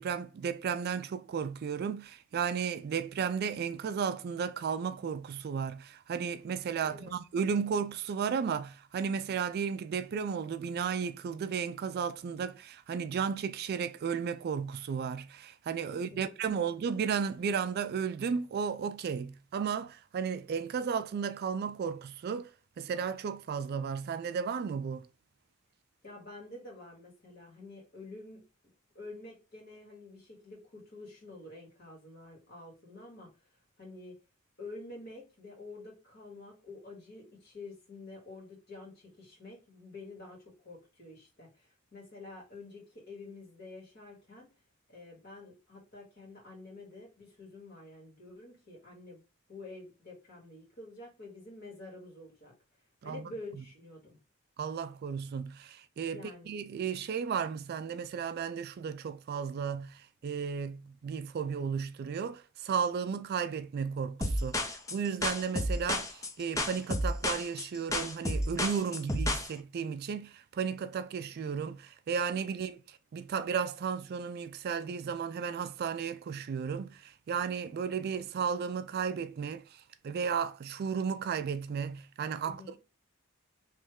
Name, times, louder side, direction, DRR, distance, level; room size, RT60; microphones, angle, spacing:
voice 1, 0.0-22.5 22.8-25.0 53.0-53.3 54.6-82.8, right 6 dB, 50° right, 0.3 m, -34 dB
voice 2, 6.8-7.1 15.9-16.7 26.0-28.4 28.9-33.3 33.8-34.2 34.6-44.5 44.9-49.2 49.5-52.5 53.0-54.2 56.1-56.5 68.9-69.3 82.5-82.8, left 2 dB, 50° left, 2.0 m, -48 dB
sound 1, 64.2-69.5, left 1 dB, 15° left, 0.5 m, -31 dB
3.2 x 3.1 x 3.5 m
head